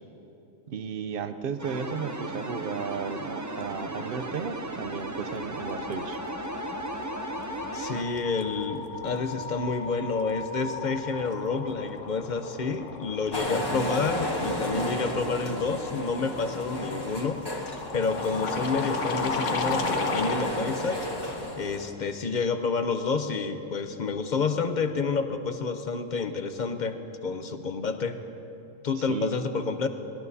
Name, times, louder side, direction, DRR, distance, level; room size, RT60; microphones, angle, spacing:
voice 1, 0.7-6.2 29.0-29.4, right 6 dB, 55° right, 10 dB, 0.7 m, -34 dB
sound 1, 1.6-8.1, right 2 dB, 25° right, 0.3 m, -36 dB
sound 2, 4.7-5.0 5.3-20.5, left 5 dB, 70° left, 1.2 m, -36 dB
voice 2, 7.7-17.4 17.9-21.0 21.6-28.2 28.8-29.9, left 4 dB, 45° left, 8 dB, 0.7 m, -29 dB
sound 3, 13.3-21.9, equal, 20° left, 1.3 m, -32 dB
22.0 x 19.0 x 2.7 m, 3.0 s
omnidirectional pair, 1.3 m